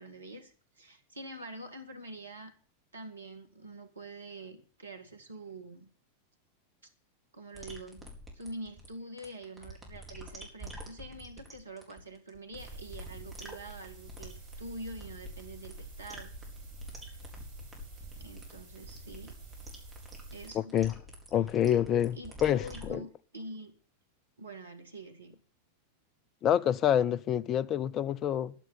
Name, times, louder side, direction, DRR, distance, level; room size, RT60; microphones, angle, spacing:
voice 1, 0.0-2.5 2.9-5.9 7.3-8.1 8.3-16.4 18.2-19.4 20.3-20.8 22.1-23.7 24.4-25.4, right 1 dB, 75° right, 1.9 m, -45 dB
sound 1, 7.5-22.9, equal, 5° right, 4.3 m, -47 dB
sound 2, 12.6-20.5, right 3 dB, 50° right, 4.6 m, -48 dB
voice 2, 20.5-20.9 21.3-23.0 26.4-28.5, left 10 dB, 30° left, 0.6 m, -27 dB
11.0 x 10.0 x 7.0 m
figure-of-eight pair, 90°, 0 cm